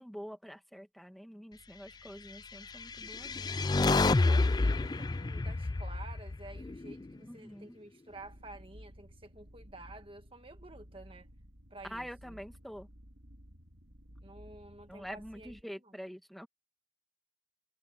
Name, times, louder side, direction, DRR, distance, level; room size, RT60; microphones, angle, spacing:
voice 1, 0.0-3.5 7.2-7.8 11.8-12.9 14.9-16.5, equal, ahead, 1.8 m, -46 dB
sound 1, 2.7-7.1, left 3 dB, 20° left, 0.4 m, -29 dB
voice 2, 3.7-11.3 11.7-12.4 14.2-15.6 15.8-16.0, right 2 dB, 30° right, 1.6 m, -51 dB
sound 2, 8.1-15.6, equal, 90° right, 4.3 m, -55 dB
head